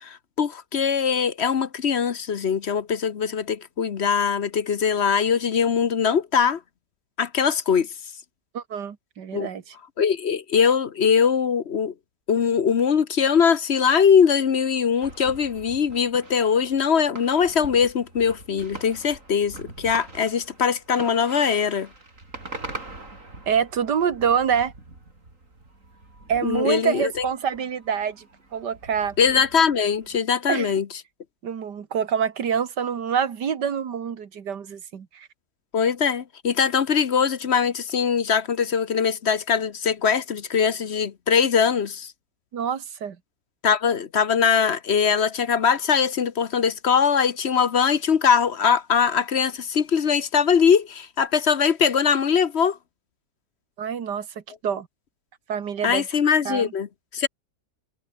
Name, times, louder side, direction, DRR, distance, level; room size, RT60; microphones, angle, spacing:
voice 1, 0.0-6.6 7.2-7.9 9.3-9.5 10.0-11.9 12.3-21.9 26.4-27.3 29.2-30.8 35.7-42.1 43.6-52.8 55.8-56.9 57.1-57.3, left 7 dB, 45° left, 1.0 m, -21 dB
voice 2, 8.5-9.7 23.5-24.7 26.3-28.2 28.5-29.1 30.5-30.7 31.4-35.3 42.5-43.2 53.8-54.3 54.6-54.9 55.5-56.1 56.5-56.7, right 7 dB, 90° right, 2.2 m, -26 dB
sound 1, 15.0-30.2, right 2 dB, 50° right, 5.4 m, -43 dB
omnidirectional pair, 1.8 m